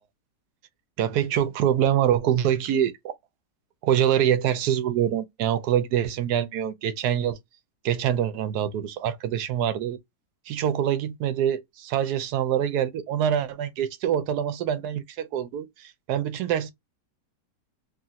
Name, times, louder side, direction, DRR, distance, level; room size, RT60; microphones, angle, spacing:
voice 1, 1.0-3.2 3.8-7.4 7.8-10.0 10.5-16.7, right 10 dB, 75° right, 1.1 m, -25 dB
3.1 x 2.4 x 2.7 m
omnidirectional pair, 1.7 m